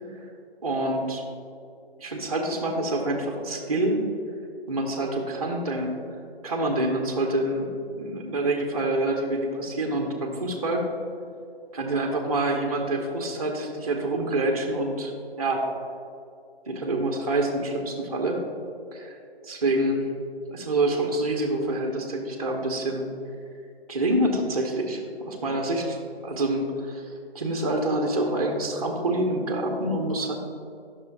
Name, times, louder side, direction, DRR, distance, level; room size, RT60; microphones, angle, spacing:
voice 1, 0.6-1.2 2.0-4.0 4.7-6.0 6.4-7.7 7.9-10.8 11.7-15.1 15.4-15.6 16.7-18.4 18.9-19.1 19.4-20.0 20.5-23.1 23.9-26.0 26.2-27.1 27.3-30.4, right 1 dB, 35° right, 2 dB, 0.7 m, -26 dB
10.5 x 6.1 x 2.2 m, 2.5 s
figure-of-eight pair, 145°, 31 cm